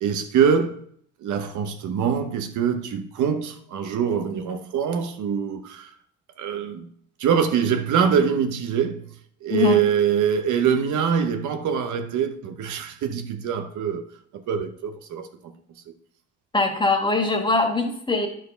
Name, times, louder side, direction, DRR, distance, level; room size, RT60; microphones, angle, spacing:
voice 1, 0.0-0.8 1.2-5.9 6.4-6.9 7.2-9.0 9.4-14.1 14.3-15.5, right 7 dB, 75° right, 1.0 m, -24 dB
voice 2, 9.5-9.8 16.5-18.3, left 2 dB, 15° left, 1.8 m, -22 dB
10.5 x 4.7 x 5.8 m
cardioid pair, 90°, 30 cm